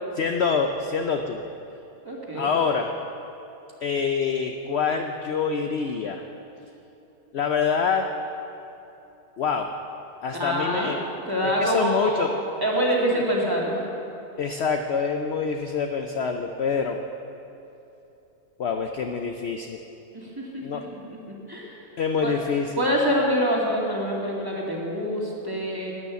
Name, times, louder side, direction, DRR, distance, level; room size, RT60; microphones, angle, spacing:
voice 1, 0.1-1.4 2.3-2.9 3.8-6.2 7.3-8.1 9.4-9.7 10.2-11.1 11.6-12.3 13.0-13.1 14.4-17.0 18.6-19.8 20.6-20.8 22.0-22.9, left 5 dB, 55° left, 5 dB, 0.7 m, -26 dB
voice 2, 2.0-2.5 10.3-11.0 11.3-12.3 12.6-13.8 20.1-21.2 21.5-21.8 22.2-22.3 22.8-25.9, equal, 15° right, -3 dB, 2.2 m, -26 dB
12.5 x 9.7 x 8.2 m, 2.9 s
omnidirectional pair, 1.7 m